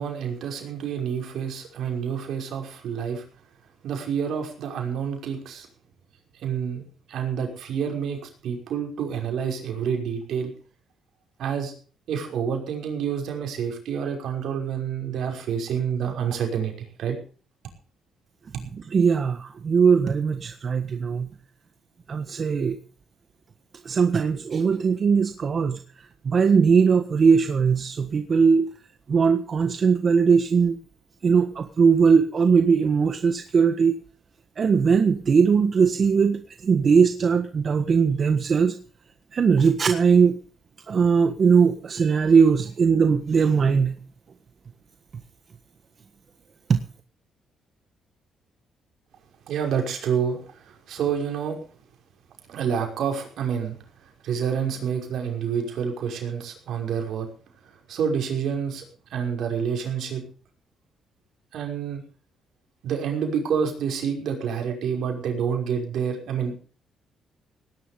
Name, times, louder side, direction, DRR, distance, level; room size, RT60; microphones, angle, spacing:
voice 1, 0.0-3.3 3.8-5.7 6.3-10.5 11.4-11.7 12.1-17.2 49.5-51.6 52.5-57.3 57.6-58.8 59.1-60.2 61.5-62.0 62.8-66.5, right 7 dB, 75° right, 3 dB, 5.5 m, -28 dB
voice 2, 18.9-21.3 22.1-22.8 23.8-25.8 26.2-28.7 29.1-30.8 31.2-33.9 34.6-38.7 39.3-40.4 40.9-43.9 46.7-46.8, right 5 dB, 45° right, 8 dB, 1.5 m, -20 dB
18.5 x 11.5 x 5.3 m, 0.40 s
cardioid pair, 90°, 0 cm